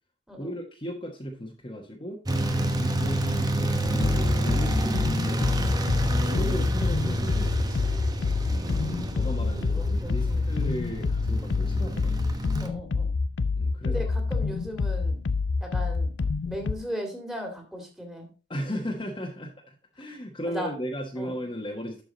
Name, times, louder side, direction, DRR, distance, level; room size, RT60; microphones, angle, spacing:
voice 1, 0.4-5.7 6.3-7.9 9.2-12.2 13.5-14.1 14.4-14.6 18.5-22.0, equal, 25° left, 0 dB, 1.3 m, -36 dB
sound 1, 2.3-12.7, right 1 dB, 20° right, 1.0 m, -28 dB
sound 2, 3.8-16.7, left 4 dB, 80° left, 0.5 m, -27 dB
voice 2, 5.4-6.1 8.5-10.4 12.6-13.1 13.8-14.0 14.3-15.2 15.6-16.1 16.4-18.3 20.5-20.7 21.2-21.3, equal, 5° right, 3 dB, 2.2 m, -37 dB
12.0 x 5.0 x 4.0 m, 0.33 s
head